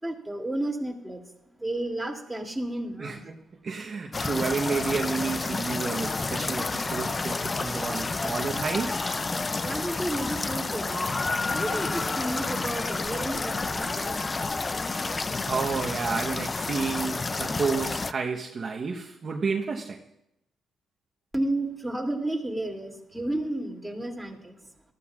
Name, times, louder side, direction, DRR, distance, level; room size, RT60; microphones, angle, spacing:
voice 1, 0.0-3.3 9.4-15.0 21.3-24.6, right 1 dB, 5° right, 2.6 m, -32 dB
voice 2, 3.0-3.4 3.6-9.2 15.5-20.0, right 4 dB, 45° right, 1.0 m, -30 dB
sound 1, 4.1-18.1, left 3 dB, 25° left, 0.4 m, -30 dB
19.0 x 13.5 x 2.4 m
cardioid pair, 90°, 0 cm